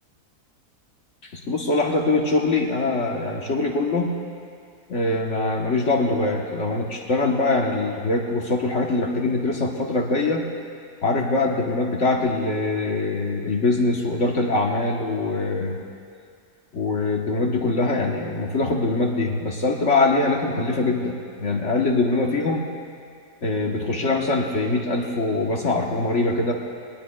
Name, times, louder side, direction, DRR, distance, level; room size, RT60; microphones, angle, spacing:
voice 1, 1.3-4.1 4.9-10.4 11.0-15.8 16.7-22.7 23.4-26.5, left 2 dB, 50° left, 0 dB, 1.4 m, -23 dB
22.0 x 19.0 x 2.3 m, 2.3 s
omnidirectional pair, 1.7 m